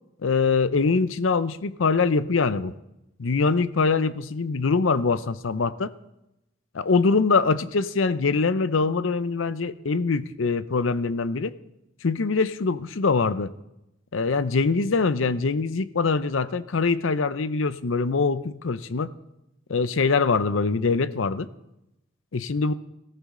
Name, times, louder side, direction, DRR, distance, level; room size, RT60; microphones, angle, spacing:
voice 1, 0.2-2.7 3.2-5.9 6.7-11.5 12.0-13.5 14.1-19.1 19.7-21.5 22.3-22.7, left 4 dB, 75° left, 15 dB, 0.6 m, -23 dB
18.0 x 14.5 x 3.8 m, 0.88 s
head